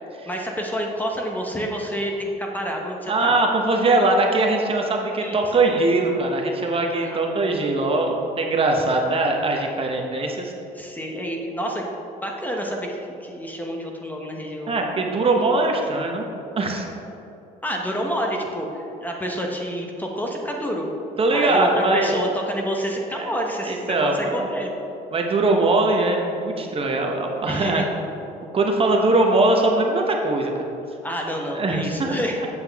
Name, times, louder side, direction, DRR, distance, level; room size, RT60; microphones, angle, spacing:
voice 1, 0.3-3.4 5.2-5.4 7.0-7.2 10.7-11.9 12.2-14.7 17.6-20.9 21.3-24.7 27.5-27.9 31.0-32.4, equal, 10° left, 0 dB, 1.0 m, -28 dB
voice 2, 3.1-10.5 14.7-16.2 16.6-16.9 21.2-22.2 23.1-23.3 23.6-24.4 25.1-27.8 28.5-30.5 31.5-32.5, right 2 dB, 35° right, 1 dB, 1.0 m, -21 dB
8.1 x 7.6 x 3.5 m, 2.8 s
cardioid pair, 110°, 17 cm